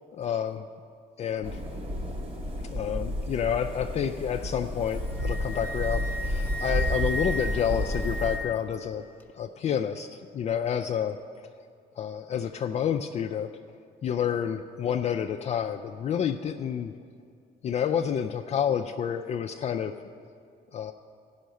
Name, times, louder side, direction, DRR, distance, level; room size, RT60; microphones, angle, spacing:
voice 1, 0.1-0.7 1.2-1.6 2.6-9.1 9.4-11.2 12.0-13.5 14.0-16.9 17.6-20.0 20.7-20.9, left 8 dB, 40° left, 5 dB, 0.4 m, -29 dB
sound 1, 1.4-8.4, left 1 dB, 35° right, 1.2 m, -31 dB
Wind instrument woodwind instrument, 4.8-8.8, right 1 dB, 10° left, 0.9 m, -36 dB
15.0 x 5.7 x 6.3 m, 2.4 s
cardioid pair, 110°, 17 cm